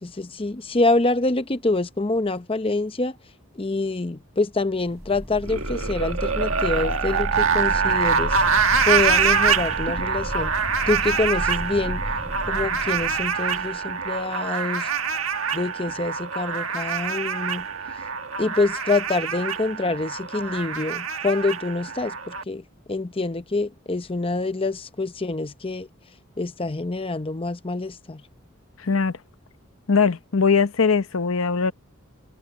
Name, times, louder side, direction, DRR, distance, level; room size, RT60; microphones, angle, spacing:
voice 1, 0.0-3.2 3.6-8.4 8.9-10.5 10.9-12.0 12.5-14.9 15.5-17.7 18.4-22.6 22.9-25.9 26.4-28.2, left 2 dB, 25° left, 0.7 m, -26 dB
sound 1, 4.7-14.0, equal, 10° right, 7.8 m, -33 dB
sound 2, 5.4-22.4, right 6 dB, 90° right, 1.6 m, -25 dB
voice 2, 28.8-29.2 29.9-31.7, left 5 dB, 85° left, 0.8 m, -20 dB
head